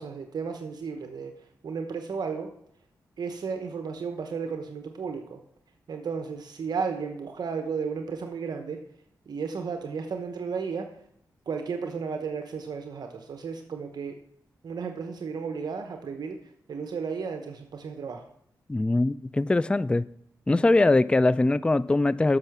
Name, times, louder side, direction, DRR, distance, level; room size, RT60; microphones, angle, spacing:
voice 1, 0.0-1.3 1.6-2.5 3.2-5.4 5.9-8.8 9.3-10.9 11.5-14.1 14.6-16.4 16.7-18.3, right 5 dB, 70° right, 0.9 m, -33 dB
voice 2, 18.7-20.0 20.5-22.4, left 2 dB, 15° left, 0.3 m, -22 dB
9.8 x 6.6 x 6.0 m
cardioid pair, 70°, 7 cm